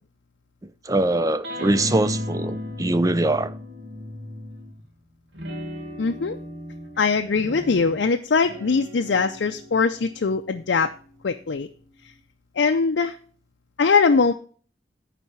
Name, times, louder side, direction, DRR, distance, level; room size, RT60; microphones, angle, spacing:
voice 1, 0.9-3.5, right 2 dB, 20° right, 0.5 m, -22 dB
sound 1, 1.4-4.8 5.3-12.1, left 1 dB, 75° right, 2.1 m, -36 dB
voice 2, 6.0-6.4 7.0-10.9 11.2-11.7 12.6-13.2 13.8-14.3, left 4 dB, 75° left, 0.5 m, -21 dB
10.0 x 4.2 x 7.2 m
head